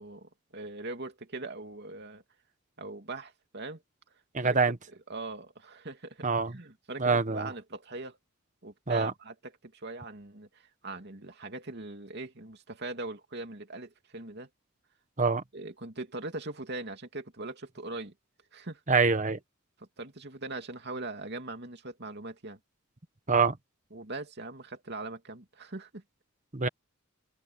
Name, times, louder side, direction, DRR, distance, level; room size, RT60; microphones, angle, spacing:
voice 1, 0.0-2.2 2.8-3.8 4.1-4.6 4.9-8.2 8.6-14.5 15.5-18.1 18.5-18.8 19.8-22.6 23.9-26.0, right 2 dB, 55° right, 2.9 m, -41 dB
voice 2, 4.3-4.7 6.2-6.5 7.0-7.5 8.9-9.1 15.2-15.4 18.9-19.4 23.3-23.6 26.5-26.7, right 4 dB, 35° right, 1.3 m, -25 dB
head